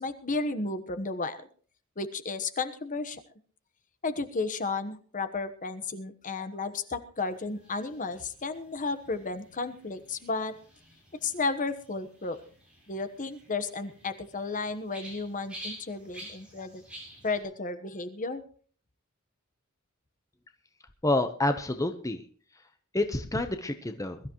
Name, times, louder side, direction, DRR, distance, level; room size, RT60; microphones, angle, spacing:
voice 1, 0.0-1.5 2.0-3.2 4.0-10.5 11.2-12.4 12.9-16.8 17.2-18.4, left 3 dB, 40° left, 10 dB, 1.2 m, -33 dB
sound 1, 7.2-17.4, equal, 5° right, 7.5 m, -50 dB
voice 2, 21.0-22.2 22.9-24.2, left 2 dB, 15° left, 7 dB, 0.9 m, -28 dB
22.0 x 13.0 x 3.1 m, 0.42 s
head